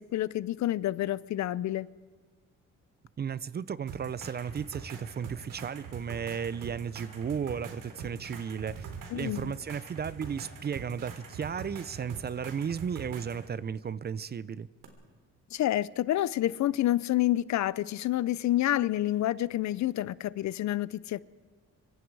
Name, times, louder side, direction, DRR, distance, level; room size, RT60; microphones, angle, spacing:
voice 1, 0.0-1.9 9.1-9.5 15.5-21.2, left 14 dB, 60° left, 0.6 m, -28 dB
voice 2, 3.2-8.9 9.1-14.7, right 7 dB, 30° right, 0.6 m, -34 dB
sound 1, 3.9-13.5 14.8-14.9, right 5 dB, 85° right, 3.6 m, -44 dB
25.5 x 24.5 x 4.8 m
cardioid pair, 120°, 31 cm